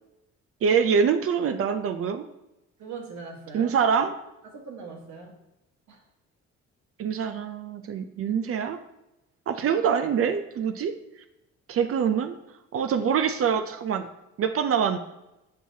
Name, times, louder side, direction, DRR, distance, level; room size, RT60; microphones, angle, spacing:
voice 1, 0.6-2.3 3.5-4.1 7.0-8.8 9.5-10.9 11.7-12.4 12.7-14.1 14.4-15.0, right 7 dB, 50° right, 8 dB, 0.5 m, -25 dB
voice 2, 2.8-3.7 4.5-5.4 5.9-6.0, right 5 dB, 70° right, 1 dB, 1.4 m, -40 dB
7.5 x 4.7 x 2.7 m, 0.91 s
cardioid pair, 90°, 30 cm